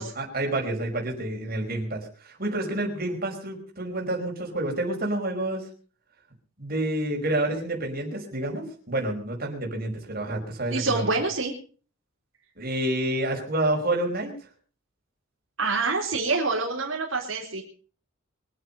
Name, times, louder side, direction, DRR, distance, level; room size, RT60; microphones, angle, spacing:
voice 1, 0.0-5.7 6.6-11.1 12.6-14.3, right 1 dB, 45° right, 0 dB, 5.1 m, -29 dB
voice 2, 10.7-11.5 15.6-17.6, right 3 dB, 70° right, -1 dB, 4.2 m, -26 dB
24.0 x 9.4 x 5.6 m, 0.41 s
head